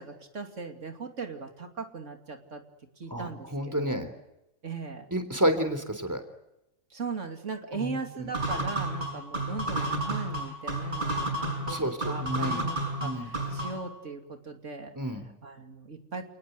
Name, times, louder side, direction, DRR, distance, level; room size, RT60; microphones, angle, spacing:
voice 1, 0.0-2.6 3.0-4.1 4.6-5.1 6.9-16.3, right 4 dB, 85° right, 5 dB, 3.0 m, -39 dB
voice 2, 3.1-4.1 5.1-6.2 7.7-7.8 11.7-12.0 12.2-12.6 13.0-13.3 15.0-15.2, right 1 dB, 15° right, 8 dB, 3.6 m, -29 dB
sound 1, 8.3-13.9, right 1 dB, 40° right, 7.2 m, -31 dB
30.0 x 19.5 x 8.0 m, 0.91 s
omnidirectional pair, 1.2 m